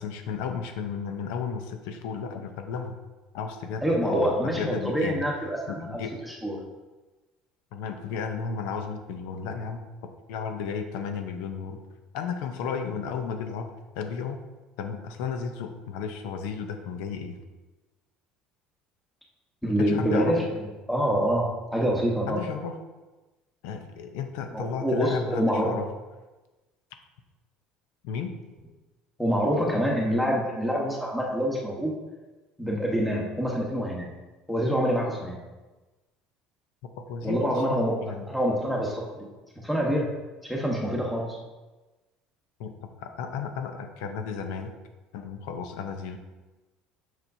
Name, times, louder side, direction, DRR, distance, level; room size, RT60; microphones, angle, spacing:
voice 1, 0.0-3.0 3.3-5.2 5.7-6.1 7.7-9.8 10.3-11.8 12.1-13.7 14.0-14.4 14.8-17.4 19.8-20.5 22.3-22.8 23.6-25.9 28.0-28.3 37.1-38.3 42.6-42.7 43.0-44.7 45.1-46.2, left 6 dB, 85° left, 6 dB, 0.7 m, -33 dB
voice 2, 3.8-6.6 19.6-20.4 20.9-22.4 24.5-25.8 29.2-31.9 32.6-34.1 34.5-35.4 37.2-37.9 38.3-39.3 39.6-40.1 40.4-41.4, equal, ahead, -2 dB, 1.2 m, -26 dB
7.2 x 5.9 x 2.7 m, 1.2 s
cardioid pair, 145°, 2 cm